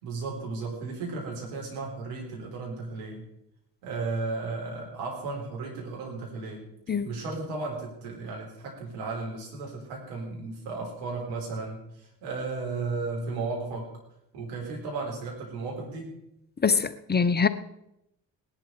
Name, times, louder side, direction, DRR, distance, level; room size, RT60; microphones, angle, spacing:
voice 1, 0.0-3.2 3.8-6.7 7.0-14.0 14.3-16.2, right 3 dB, 70° right, -1 dB, 4.3 m, -34 dB
voice 2, 16.6-17.5, left 5 dB, 20° left, 13 dB, 0.9 m, -23 dB
18.0 x 11.5 x 4.8 m, 0.83 s
figure-of-eight pair, 45°, 49 cm